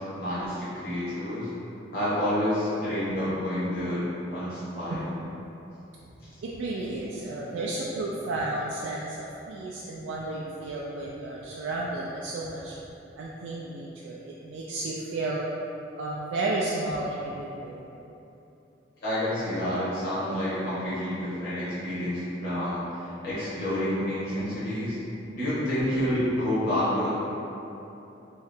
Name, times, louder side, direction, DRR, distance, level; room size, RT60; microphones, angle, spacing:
voice 1, 0.1-1.5 1.9-5.1 19.0-25.0 25.3-27.1, left 1 dB, 50° left, -12 dB, 0.8 m, -29 dB
voice 2, 6.4-12.8 13.2-15.5 16.0-17.8, right 2 dB, 85° right, -5 dB, 0.3 m, -32 dB
2.8 x 2.7 x 3.2 m, 3.0 s
head